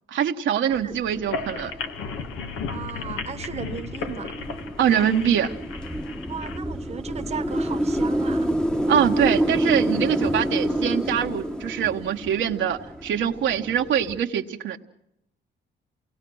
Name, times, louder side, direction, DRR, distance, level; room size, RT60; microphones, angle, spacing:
voice 1, 0.1-1.7 4.8-5.5 8.9-14.8, right 9 dB, 70° right, 1.2 m, -23 dB
sound 1, 0.7-14.2, right 1 dB, 5° left, 1.1 m, -28 dB
sound 2, 1.2-6.6, left 5 dB, 90° left, 1.6 m, -34 dB
voice 2, 2.7-4.4 6.3-8.5, right 6 dB, 35° right, 1.2 m, -36 dB
28.0 x 19.0 x 6.3 m
cardioid pair, 90°, 20 cm